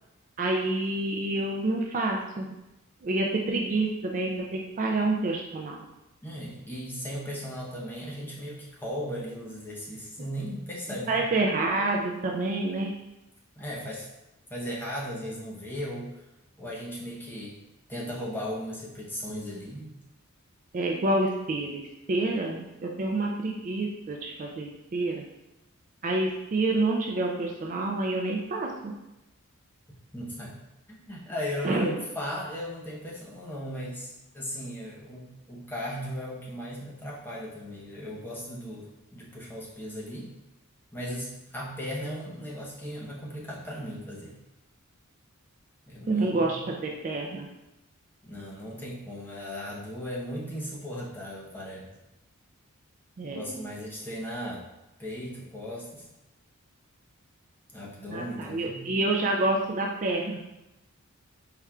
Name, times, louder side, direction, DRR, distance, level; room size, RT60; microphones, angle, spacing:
voice 1, 0.4-2.5 3.0-5.8 11.1-12.9 20.7-25.2 26.0-28.9 31.6-32.0 46.1-47.5 53.2-53.6 58.1-60.4, right 2 dB, 35° right, 0 dB, 0.3 m, -28 dB
voice 2, 6.2-11.3 13.5-14.1 14.5-16.2 16.6-17.5 17.9-19.9 30.1-30.6 30.9-40.3 40.9-44.4 45.9-46.7 48.2-51.9 53.2-54.6 55.0-56.1 57.7-58.9, equal, 10° left, -5 dB, 0.7 m, -37 dB
4.2 x 3.5 x 2.3 m, 0.95 s
head